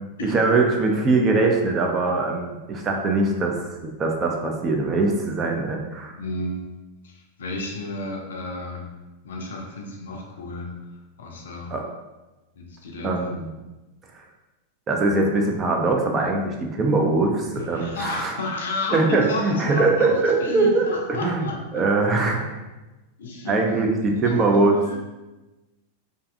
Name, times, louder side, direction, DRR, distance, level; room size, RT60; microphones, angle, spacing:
voice 1, 0.2-6.1 11.7-11.8 13.0-13.5 14.9-18.3 18.9-21.5 21.7-22.6 23.5-25.0, right 3 dB, 25° right, 2 dB, 0.4 m, -22 dB
voice 2, 6.2-6.7 7.0-8.9 9.2-10.7 11.2-11.8 12.6-13.3 17.5-21.9 23.2-23.6 24.2-25.0, left 2 dB, 65° left, 0 dB, 0.4 m, -32 dB
2.5 x 2.3 x 2.4 m, 1.1 s
figure-of-eight pair, 90°, 0 cm